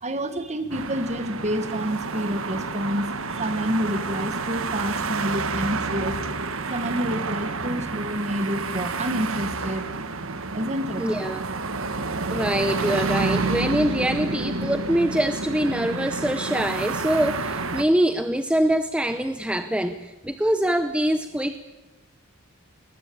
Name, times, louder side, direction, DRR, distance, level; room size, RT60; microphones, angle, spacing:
voice 1, 0.0-6.2 6.7-9.9 10.5-11.1, equal, 30° right, 10 dB, 1.5 m, -28 dB
sound 1, 0.7-17.8, right 3 dB, 70° right, 1.4 m, -29 dB
voice 2, 11.0-11.4 12.3-21.6, right 1 dB, 5° right, 8 dB, 0.7 m, -24 dB
20.5 x 20.5 x 8.5 m, 1.1 s
head